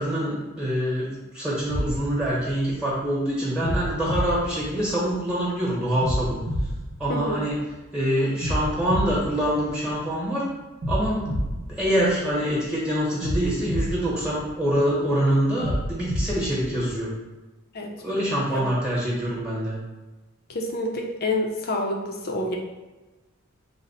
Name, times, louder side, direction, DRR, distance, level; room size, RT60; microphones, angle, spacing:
voice 1, 0.0-6.4 7.0-7.6 7.9-10.5 10.9-17.1 18.0-19.7, equal, 5° right, -6 dB, 0.9 m, -25 dB
sound 1, 1.7-3.0 3.6-5.3 6.0-7.8 8.4-10.2 10.8-12.6 13.2-14.9 15.6-17.0, equal, 65° right, 0.7 m, -30 dB
voice 2, 7.1-7.4 17.7-17.9 18.5-18.6 20.5-22.6, left 1 dB, 45° left, 1 dB, 0.6 m, -28 dB
4.0 x 2.1 x 4.1 m, 1.1 s
head